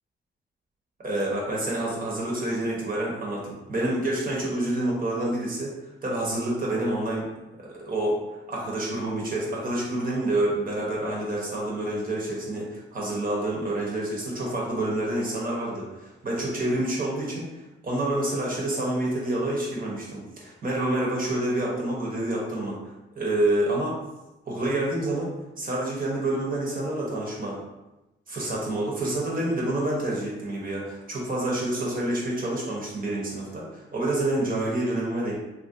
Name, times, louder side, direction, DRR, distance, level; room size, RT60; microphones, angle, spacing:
voice 1, 1.0-5.7 6.0-7.3 7.6-24.0 24.4-27.6 28.3-35.3, right 1 dB, 45° right, -4 dB, 1.1 m, -28 dB
2.9 x 2.7 x 2.6 m, 0.99 s
cardioid pair, 75°, 21 cm